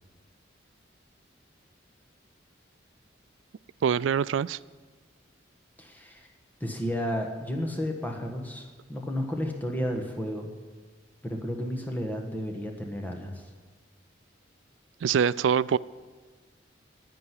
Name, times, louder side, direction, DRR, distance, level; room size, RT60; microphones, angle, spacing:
voice 1, 3.8-4.6 15.0-15.8, right 7 dB, 85° right, 19 dB, 0.3 m, -24 dB
voice 2, 5.8-6.3 6.6-10.5 11.2-13.4, equal, 10° left, 2 dB, 1.3 m, -32 dB
10.0 x 9.7 x 9.7 m, 1.4 s
head